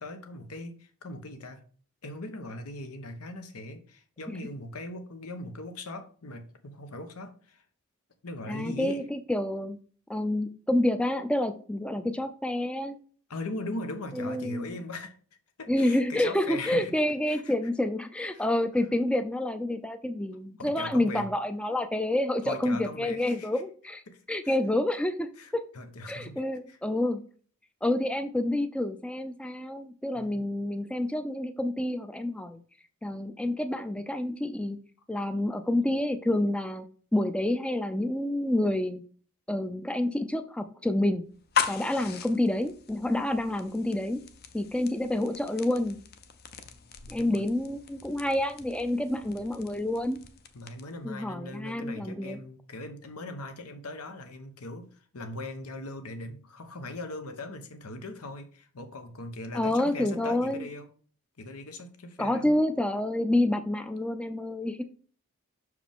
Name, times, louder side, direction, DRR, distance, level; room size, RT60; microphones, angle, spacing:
voice 1, 0.0-1.6 2.0-7.6 8.2-9.0 13.3-15.2 15.6-17.5 18.3-18.5 20.6-21.3 22.4-23.5 24.1-24.2 24.4-24.6 25.4-26.4 26.7-26.8 30.1-30.5 47.0-47.5 50.5-60.9 61.4-62.6, left 2 dB, 90° left, 8 dB, 1.0 m, -40 dB
voice 2, 8.5-9.8 10.1-13.0 14.2-14.7 15.7-24.0 24.3-25.6 26.1-27.2 27.8-32.6 33.0-34.8 35.1-36.8 37.1-39.0 39.5-41.3 41.7-44.2 44.5-46.0 47.1-50.2 51.0-52.4 59.5-60.7 62.2-64.8, left 1 dB, 5° left, 9 dB, 0.4 m, -28 dB
sound 1, 41.3-51.0, left 7 dB, 45° left, 0.6 m, -38 dB
6.2 x 4.8 x 3.6 m, 0.42 s
head